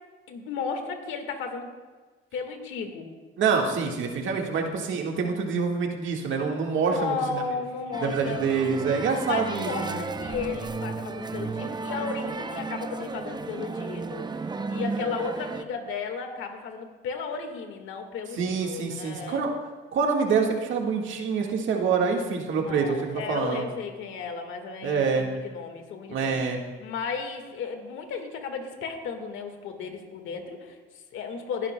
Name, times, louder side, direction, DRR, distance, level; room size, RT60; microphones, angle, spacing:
voice 1, 0.3-1.7 2.3-3.1 6.5-8.5 9.3-19.4 22.6-26.5 26.8-31.7, left 5 dB, 85° left, 5 dB, 1.6 m, -34 dB
voice 2, 3.4-7.1 8.0-10.0 18.4-19.5 19.9-23.6 24.8-25.3 26.1-26.6, right 5 dB, 75° right, 1 dB, 1.6 m, -26 dB
sound 1, 7.9-15.6, right 4 dB, 20° right, 0.6 m, -34 dB
21.0 x 11.0 x 2.2 m, 1.4 s
cardioid pair, 90°, 20 cm